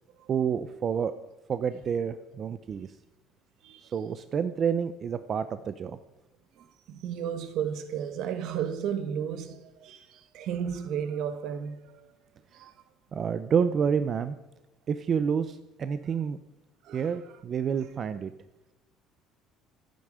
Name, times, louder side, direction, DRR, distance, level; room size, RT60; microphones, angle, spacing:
voice 1, 0.3-1.1 1.5-2.9 3.8-6.0 13.1-14.4 14.9-16.4 16.9-18.3, right 7 dB, 35° right, 0.6 m, -28 dB
voice 2, 6.9-12.1 12.5-12.7 16.8-17.0, right 8 dB, 60° right, 1.6 m, -33 dB
26.0 x 9.3 x 5.0 m
cardioid pair, 150°, 0 cm